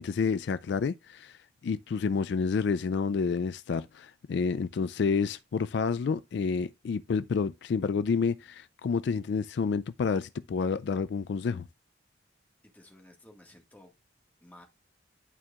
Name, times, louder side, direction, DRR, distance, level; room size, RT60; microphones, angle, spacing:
voice 1, 0.0-11.7, left 5 dB, 60° left, 0.3 m, -29 dB
voice 2, 12.6-13.9 14.4-14.7, left 1 dB, 10° left, 1.6 m, -54 dB
11.0 x 4.6 x 2.4 m
head